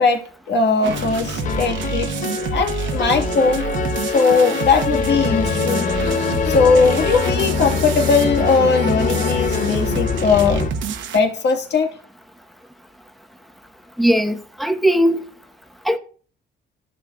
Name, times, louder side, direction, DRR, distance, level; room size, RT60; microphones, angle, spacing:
voice 1, 0.0-2.1 2.5-3.7 4.1-5.9 6.4-10.6 11.1-11.9, left 4 dB, 60° left, 1.7 m, -19 dB
sound 1, 0.8-10.7, left 6 dB, 40° left, 0.4 m, -24 dB
sound 2, 0.8-11.2, right 6 dB, 70° right, 0.9 m, -27 dB
voice 2, 14.0-15.2 15.8-16.0, equal, ahead, 1.0 m, -18 dB
14.0 x 6.5 x 2.3 m
cardioid pair, 90°, 20 cm